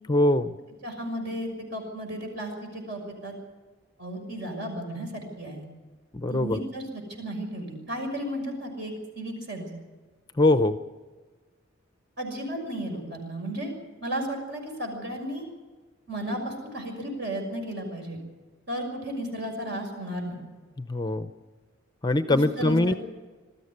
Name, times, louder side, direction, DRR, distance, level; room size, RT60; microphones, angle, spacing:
voice 1, 0.1-0.5 6.1-6.6 10.4-10.8 20.8-21.3 22.0-22.9, left 2 dB, 20° left, 10 dB, 0.6 m, -22 dB
voice 2, 0.8-3.3 4.0-5.6 6.3-9.7 12.2-13.7 14.0-15.4 16.1-18.2 18.7-20.4 22.3-23.0, right 1 dB, 55° right, 2 dB, 6.0 m, -34 dB
20.0 x 13.5 x 9.6 m, 1.4 s
head